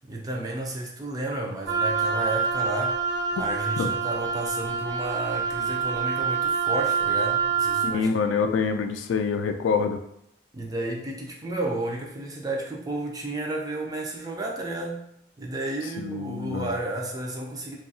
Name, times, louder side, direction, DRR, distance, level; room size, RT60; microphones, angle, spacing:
voice 1, 0.1-8.1 10.5-15.1 15.4-17.8, right 2 dB, 20° right, 0 dB, 0.3 m, -32 dB
Wind instrument woodwind instrument, 1.7-7.9, right 5 dB, 80° right, 0.8 m, -26 dB
voice 2, 7.8-10.0 16.0-16.7, left 5 dB, 85° left, 7 dB, 0.3 m, -26 dB
2.7 x 2.3 x 2.6 m, 0.76 s
head